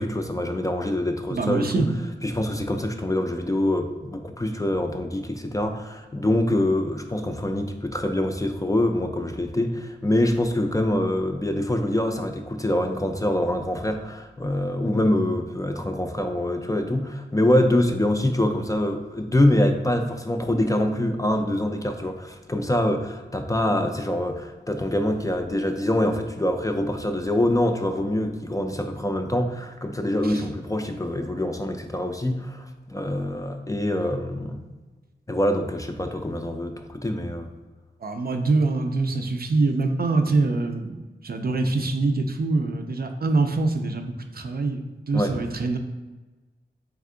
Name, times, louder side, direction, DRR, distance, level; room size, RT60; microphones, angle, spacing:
voice 1, 0.0-1.9 2.2-34.6 35.3-37.5 45.1-45.4, left 1 dB, 15° left, 5 dB, 0.4 m, -25 dB
voice 2, 1.3-1.9 30.2-30.4 38.0-45.8, right 3 dB, 50° right, 5 dB, 0.4 m, -24 dB
3.5 x 3.3 x 3.7 m, 1.2 s
wide cardioid pair, 55°, 20 cm